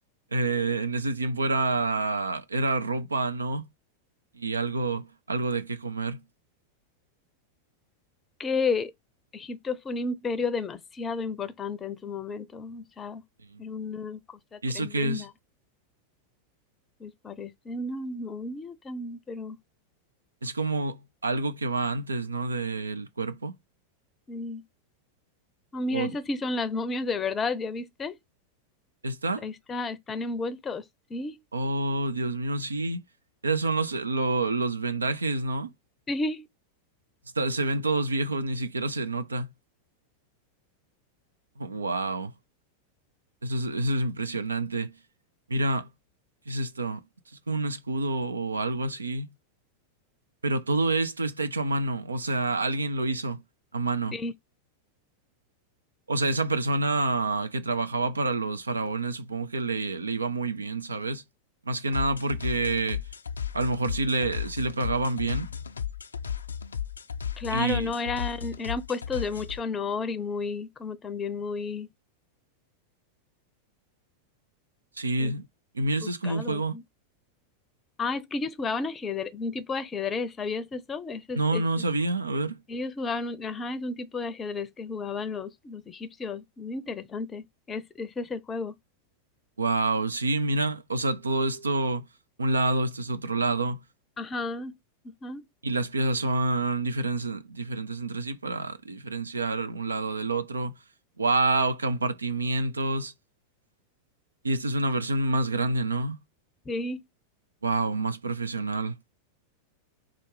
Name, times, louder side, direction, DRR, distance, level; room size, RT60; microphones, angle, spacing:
voice 1, 0.3-3.7 4.3-6.2 13.5-13.6 14.6-15.3 20.4-23.5 25.9-26.1 29.0-29.5 31.5-33.0 33.4-35.7 37.4-39.5 41.6-42.3 43.4-44.9 45.5-45.9 46.5-47.0 47.5-49.3 50.4-53.4 53.7-54.2 56.1-61.2 61.6-63.0 63.5-65.5 67.5-67.9 75.0-75.5 75.7-76.8 81.3-82.6 89.6-92.0 92.4-93.8 95.6-100.7 101.2-103.1 104.4-106.2 107.6-109.0, right 2 dB, 75° right, 0.5 m, -28 dB
voice 2, 8.4-8.9 9.3-13.2 13.6-14.2 14.5-15.3 17.0-19.6 24.3-24.6 25.7-28.2 29.4-30.8 31.1-31.4 36.1-36.5 54.1-54.3 67.4-71.9 75.2-75.3 76.0-76.8 78.0-81.8 82.7-88.7 94.2-94.8 95.0-95.4 106.7-107.0, left 3 dB, 20° left, 0.5 m, -32 dB
sound 1, 61.9-69.6, left 8 dB, 75° left, 0.3 m, -35 dB
4.3 x 2.4 x 4.7 m
figure-of-eight pair, 90°, 0 cm